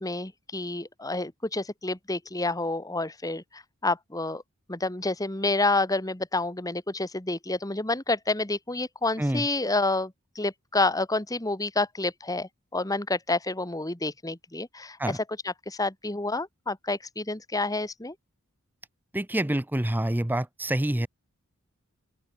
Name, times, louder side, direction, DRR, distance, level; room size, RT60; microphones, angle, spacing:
voice 1, 0.0-4.4 4.7-18.1, left 2 dB, 15° left, 1.5 m, -29 dB
voice 2, 19.1-21.1, right 1 dB, 10° right, 0.5 m, -27 dB
open air
head